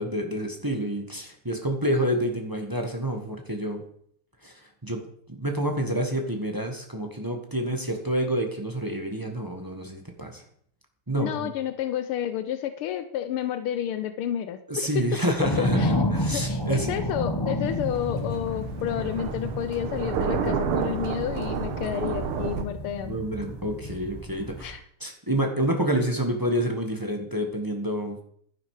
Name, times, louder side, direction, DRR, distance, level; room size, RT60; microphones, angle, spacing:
voice 1, 0.0-3.8 4.4-4.5 4.8-5.0 5.3-10.4 11.1-11.5 14.7-16.9 23.0-24.7 25.0-28.2, right 1 dB, 10° right, 3 dB, 1.1 m, -28 dB
voice 2, 11.2-15.2 15.6-15.9 16.3-23.2 24.6-24.8, left 10 dB, 80° left, 11 dB, 1.6 m, -30 dB
sound 1, 15.4-24.8, left 1 dB, 25° left, 0.5 m, -31 dB
Thunder, 17.7-22.6, right 6 dB, 85° right, 1.9 m, -30 dB
11.5 x 10.0 x 4.9 m, 0.65 s
omnidirectional pair, 2.4 m